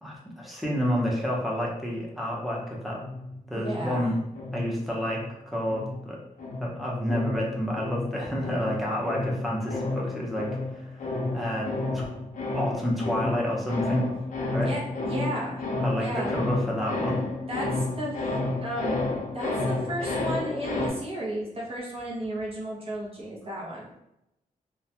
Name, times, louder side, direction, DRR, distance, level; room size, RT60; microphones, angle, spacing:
voice 1, 0.0-3.0 3.5-4.2 4.5-5.2 5.5-6.2 6.6-10.9 11.3-12.1 12.5-14.1 14.5-14.7 15.8-17.2, equal, ahead, -4 dB, 0.6 m, -29 dB
sound 1, 2.9-5.3 5.7-20.9, left 2 dB, 60° left, 0.5 m, -31 dB
voice 2, 3.5-4.1 14.6-15.6 15.9-16.3 17.5-18.2 18.6-19.0 19.3-23.9, right 1 dB, 40° right, -4 dB, 0.7 m, -33 dB
2.2 x 2.1 x 2.8 m, 0.85 s
wide cardioid pair, 110°, 15 cm